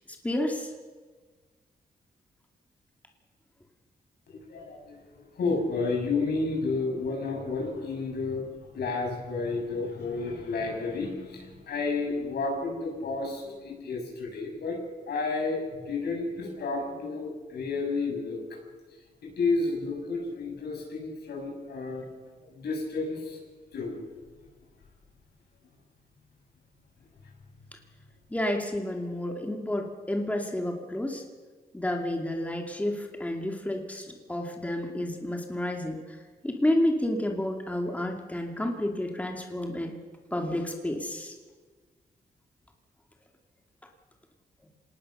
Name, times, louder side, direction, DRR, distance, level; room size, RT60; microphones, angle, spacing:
voice 1, 0.2-0.7 28.3-31.2 31.7-36.0 36.4-39.9 40.3-41.4, left 1 dB, 10° left, 2 dB, 2.5 m, -30 dB
voice 2, 4.3-5.0 5.4-8.4 8.7-14.8 15.1-18.4 19.4-22.0 22.5-23.4 23.7-24.0, left 3 dB, 80° left, 1 dB, 6.9 m, -31 dB
26.5 x 19.0 x 6.6 m, 1.4 s
wide cardioid pair, 120°, 17 cm